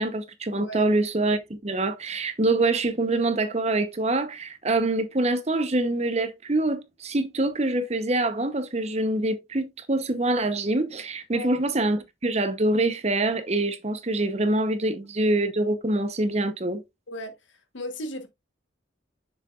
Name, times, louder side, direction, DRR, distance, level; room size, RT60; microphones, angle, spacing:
voice 1, 0.0-16.8, right 2 dB, 35° right, 0.9 m, -25 dB
voice 2, 0.5-0.9 11.3-11.5 17.1-18.3, left 1 dB, 75° left, 1.3 m, -36 dB
7.0 x 6.6 x 2.4 m
head